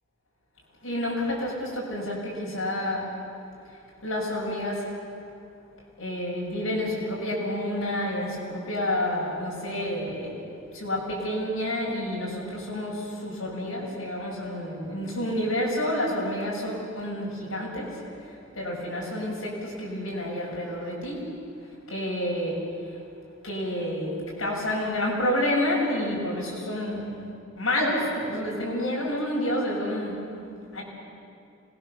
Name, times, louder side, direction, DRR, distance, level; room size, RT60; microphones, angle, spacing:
voice 1, 0.8-3.1 4.0-4.9 6.0-10.4 10.7-21.3 21.9-22.6 23.4-24.1 24.4-30.2 30.7-30.8, left 1 dB, 85° left, -3 dB, 7.2 m, -29 dB
26.0 x 21.0 x 7.1 m, 2.5 s
head